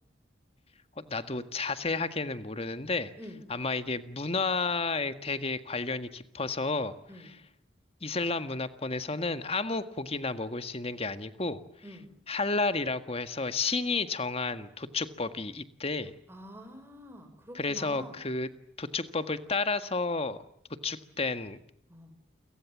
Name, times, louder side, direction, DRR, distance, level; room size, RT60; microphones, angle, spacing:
voice 1, 1.0-3.1 3.5-6.9 8.0-11.6 12.3-16.1 17.5-18.5 18.8-20.4 20.8-21.6, left 3 dB, 30° left, 11 dB, 1.7 m, -31 dB
voice 2, 3.2-3.5 7.1-7.4 11.8-12.1 16.3-18.3 21.9-22.1, equal, 15° right, 7 dB, 5.5 m, -47 dB
29.5 x 23.5 x 7.4 m, 0.70 s
head